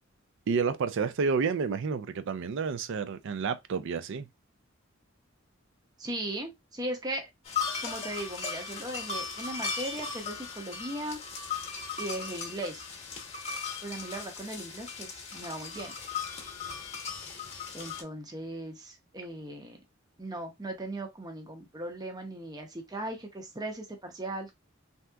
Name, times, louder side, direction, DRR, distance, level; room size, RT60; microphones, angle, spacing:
voice 1, 0.5-4.3, right 5 dB, 65° right, 0.4 m, -30 dB
voice 2, 6.0-7.3 7.8-11.2 12.0-12.8 13.8-15.9 17.7-19.8 20.2-24.5, right 1 dB, 20° right, 0.7 m, -38 dB
sound 1, 7.5-18.0, left 5 dB, 30° left, 0.9 m, -37 dB
3.4 x 2.7 x 2.3 m
head